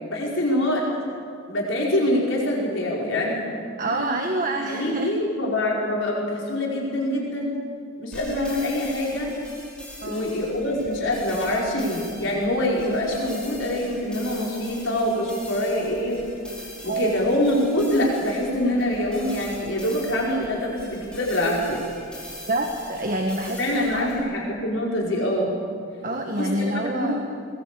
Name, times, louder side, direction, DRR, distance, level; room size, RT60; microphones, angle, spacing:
voice 1, 0.1-0.9 1.5-3.4 3.8-4.2 4.6-7.5 8.0-9.3 10.0-16.2 16.8-21.8 23.5-25.6 26.4-26.7 26.9-27.2, left 1 dB, 70° left, -3 dB, 5.0 m, -25 dB
voice 2, 3.8-5.1 10.0-10.3 16.9-17.1 22.5-24.1 26.0-27.2, right 2 dB, 40° right, 3 dB, 1.6 m, -27 dB
sound 1, 8.1-24.2, left 1 dB, 5° left, 5.6 m, -42 dB
21.0 x 20.5 x 8.3 m, 2.4 s
head